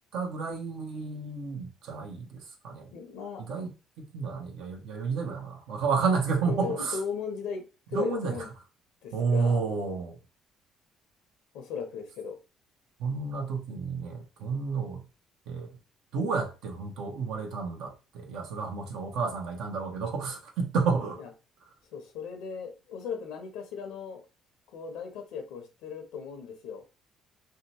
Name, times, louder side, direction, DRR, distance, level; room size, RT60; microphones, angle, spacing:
voice 1, 0.1-2.9 3.5-3.7 4.0-7.0 7.9-8.3 9.1-10.2 13.0-15.0 15.5-15.8 16.1-21.2, right 5 dB, 75° right, 0.6 m, -31 dB
voice 2, 2.9-3.4 6.4-7.6 7.9-8.5 9.0-9.6 11.5-12.4 21.2-21.3 21.9-24.2 24.7-26.8, left 6 dB, 80° left, 0.6 m, -37 dB
2.7 x 2.1 x 2.7 m
supercardioid pair, 75°, 0 cm